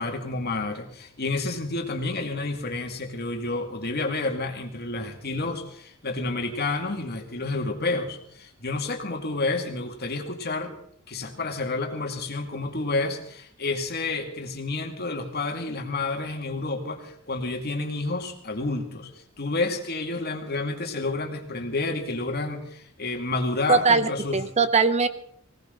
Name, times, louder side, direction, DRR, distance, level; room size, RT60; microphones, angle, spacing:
voice 1, 0.0-10.7 11.1-19.1 19.4-24.4, left 3 dB, 50° left, 4 dB, 2.4 m, -30 dB
voice 2, 23.7-25.1, right 4 dB, 30° right, 12 dB, 0.7 m, -21 dB
20.0 x 18.0 x 3.9 m, 0.66 s
head